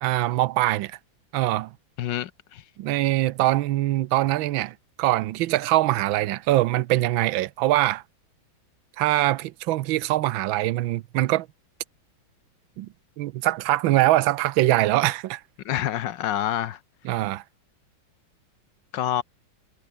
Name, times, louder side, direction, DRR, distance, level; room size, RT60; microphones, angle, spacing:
voice 1, 0.0-1.0 1.3-1.7 2.8-8.0 9.0-11.5 12.8-12.9 13.2-15.4 17.0-17.4, right 16 dB, 80° right, 1.4 m, -23 dB
voice 2, 2.0-2.6 15.6-16.8 18.9-19.2, left 11 dB, 65° left, 1.4 m, -27 dB
omnidirectional pair, 2.3 m